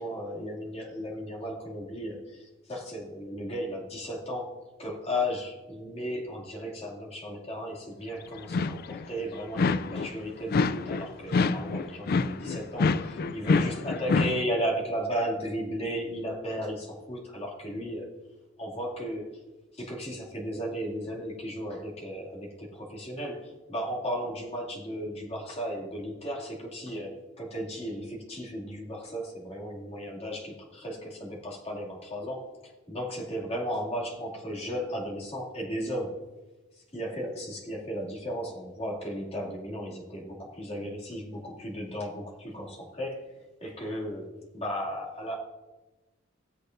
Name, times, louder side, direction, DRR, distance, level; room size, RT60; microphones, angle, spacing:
voice 1, 0.0-18.1 18.6-19.3 19.7-32.4 32.9-36.2 36.9-45.4, equal, 30° left, -4 dB, 2.5 m, -35 dB
sound 1, 8.4-9.0 9.6-10.2 10.5-14.4, left 4 dB, 50° left, 0.4 m, -26 dB
17.0 x 8.3 x 2.6 m, 1.1 s
head